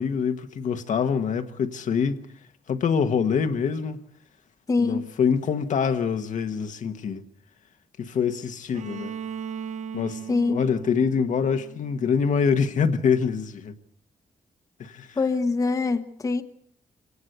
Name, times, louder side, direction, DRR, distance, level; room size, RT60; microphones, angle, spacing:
voice 1, 0.0-2.2 2.7-4.0 4.8-7.2 8.0-9.1 9.9-10.2 10.5-13.8 14.8-15.2, left 6 dB, 60° left, 1.4 m, -25 dB
voice 2, 4.7-5.0 10.3-10.6 15.2-16.4, left 3 dB, 25° left, 1.1 m, -24 dB
Bowed string instrument, 8.7-12.6, right 7 dB, 55° right, 1.0 m, -38 dB
26.5 x 18.0 x 8.0 m
wide cardioid pair, 180°, 15 cm